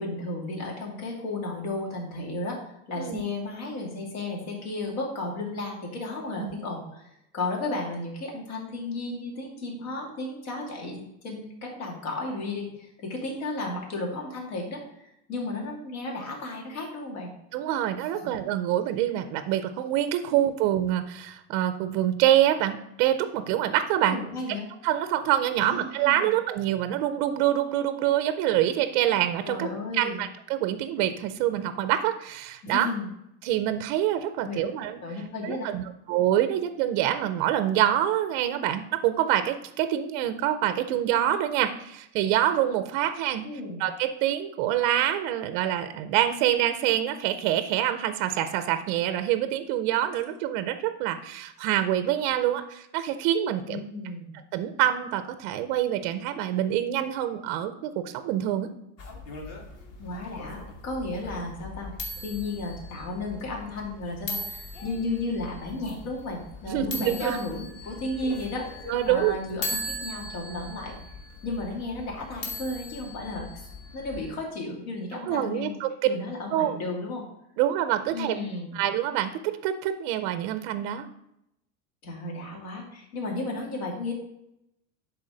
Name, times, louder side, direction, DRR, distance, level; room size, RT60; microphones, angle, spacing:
voice 1, 0.0-2.6 2.9-7.0 7.3-17.3 20.3-20.4 24.0-24.7 25.6-26.3 29.4-30.2 32.6-33.1 34.4-34.7 35.0-35.7 43.4-43.8 53.6-54.3 60.0-61.9 62.2-70.9 71.4-73.5 73.9-75.8 76.0-77.3 78.1-78.8 82.0-84.1, left 2 dB, 80° left, -1 dB, 2.7 m, -34 dB
voice 2, 17.5-24.2 24.8-29.7 29.9-32.9 33.4-35.0 35.4-43.5 43.8-53.8 54.5-58.7 66.7-67.4 68.9-69.4 75.1-75.9 76.5-76.8 77.6-78.4 78.7-81.1, right 12 dB, 35° right, 10 dB, 0.4 m, -26 dB
sound 1, 59.0-74.3, left 2 dB, 45° left, 1.5 m, -39 dB
10.5 x 4.0 x 3.8 m, 0.81 s
supercardioid pair, 165°, 42 cm